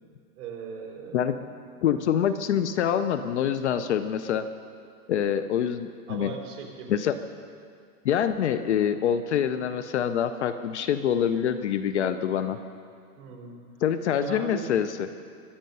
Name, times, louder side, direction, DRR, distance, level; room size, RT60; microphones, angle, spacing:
voice 1, 0.4-1.4 1.7-1.8 6.1-7.0 13.2-13.6 14.2-14.7, right 6 dB, 40° right, 0 dB, 3.7 m, -39 dB
voice 2, 1.8-4.5 5.1-6.3 6.9-7.1 8.0-12.6 13.8-15.1, left 9 dB, 50° left, 11 dB, 0.6 m, -25 dB
23.0 x 8.8 x 5.5 m, 2.2 s
supercardioid pair, 165°, 46 cm